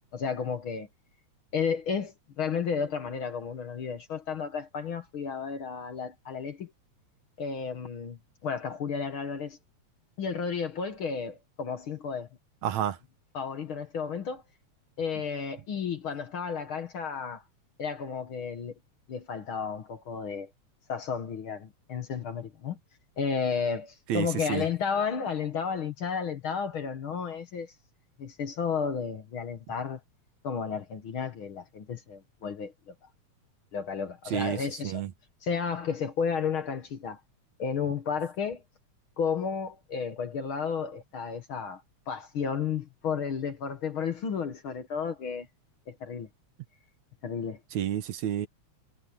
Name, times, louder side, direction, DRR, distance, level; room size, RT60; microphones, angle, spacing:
voice 1, 0.1-0.9 1.5-6.7 7.4-9.6 10.2-12.3 13.3-14.4 15.0-17.4 17.8-18.7 19.1-20.5 20.9-22.8 23.2-27.7 28.2-30.0 30.4-32.9 33.7-35.0 35.4-37.2 37.6-38.6 39.2-41.8 42.1-45.5 45.9-46.3 47.2-47.6, left 6 dB, 55° left, 1.9 m, -32 dB
voice 2, 12.6-13.0 24.1-24.7 34.3-35.1 47.7-48.5, right 10 dB, 75° right, 2.4 m, -30 dB
omnidirectional pair, 3.4 m